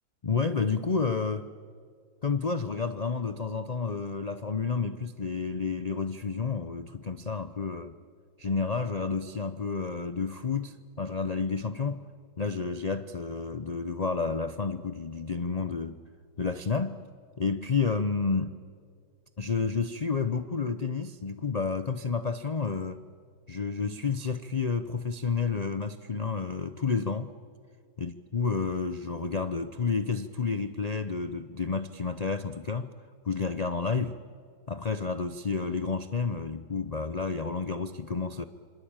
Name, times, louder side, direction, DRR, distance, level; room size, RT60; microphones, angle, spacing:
voice 1, 0.2-1.5 2.2-7.9 8.4-12.0 12.4-16.0 16.4-17.0 17.4-18.6 19.4-23.1 23.5-27.3 28.0-32.9 33.2-34.2 34.7-38.4, left 5 dB, 80° left, 11 dB, 0.3 m, -30 dB
27.0 x 25.0 x 8.9 m, 2.1 s
omnidirectional pair, 1.9 m